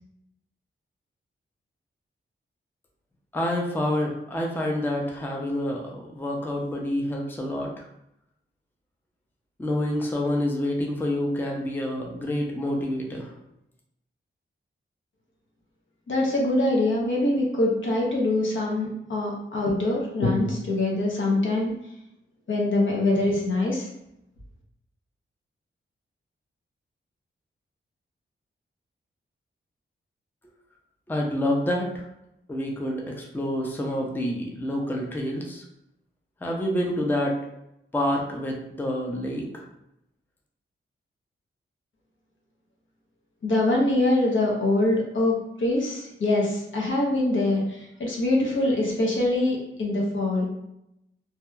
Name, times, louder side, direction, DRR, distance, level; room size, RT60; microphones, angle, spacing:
voice 1, 3.3-7.7 9.6-13.3 31.1-32.0 32.5-35.6 36.4-37.4 37.9-39.6, left 1 dB, 10° left, -1 dB, 0.5 m, -28 dB
voice 2, 16.1-21.7 22.5-23.9 43.4-50.4, left 2 dB, 65° left, -2 dB, 0.8 m, -24 dB
2.7 x 2.3 x 2.3 m, 0.83 s
cardioid pair, 70°, 21 cm